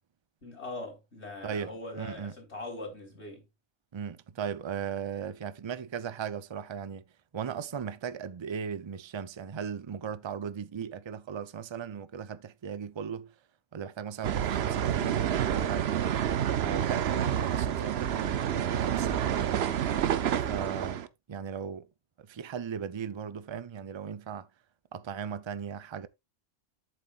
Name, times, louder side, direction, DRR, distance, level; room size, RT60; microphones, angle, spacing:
voice 1, 0.4-3.4, left 2 dB, 65° left, 4.1 m, -41 dB
voice 2, 1.4-2.3 3.9-7.0 7.3-13.3 13.7-15.9 16.6-19.8 20.4-21.9 22.2-24.5 24.9-26.1, right 7 dB, 35° right, 0.5 m, -37 dB
sound 1, 14.2-21.1, right 9 dB, 65° right, 0.9 m, -28 dB
11.0 x 7.8 x 2.4 m
omnidirectional pair, 1.2 m